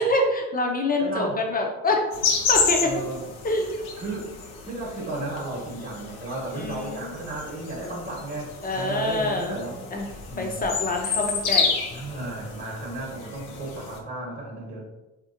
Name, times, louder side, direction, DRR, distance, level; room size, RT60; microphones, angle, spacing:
voice 1, 0.0-2.0 2.5-2.9 3.4-3.8 6.5-7.1 8.6-9.5 9.9-10.1 10.4-11.7, left 2 dB, 25° left, 2 dB, 0.7 m, -25 dB
voice 2, 1.0-1.4 2.8-3.2 4.0-9.9 10.3-10.6 11.9-14.8, right 2 dB, 35° right, -5 dB, 1.1 m, -34 dB
sound 1, 2.1-14.0, left 5 dB, 80° left, 0.7 m, -30 dB
3.3 x 2.9 x 2.5 m, 1.0 s
supercardioid pair, 75°, 37 cm